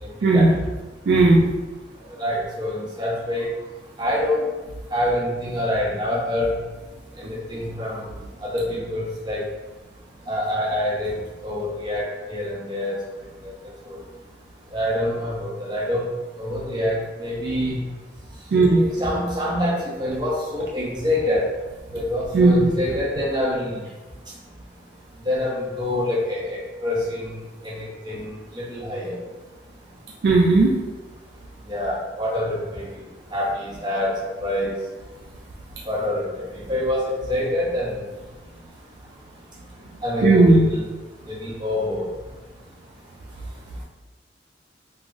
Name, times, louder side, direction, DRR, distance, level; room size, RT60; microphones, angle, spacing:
voice 1, 0.0-0.5 2.2-3.5 4.0-4.5 4.9-6.5 7.2-8.1 8.4-9.5 10.3-11.1 11.4-13.0 13.4-13.5 13.8-14.0 14.7-16.1 16.4-17.8 18.7-21.5 21.9-23.8 25.2-27.4 27.6-29.2 31.7-32.9 33.3-34.7 35.9-38.0 40.0-40.8 41.3-42.1, left 1 dB, 25° right, -6 dB, 0.7 m, -26 dB
voice 2, 1.1-1.5 18.5-18.8 22.3-22.7 30.2-30.7 40.2-40.7, right 2 dB, 65° right, -1 dB, 0.3 m, -15 dB
2.3 x 2.1 x 3.7 m, 1.2 s
head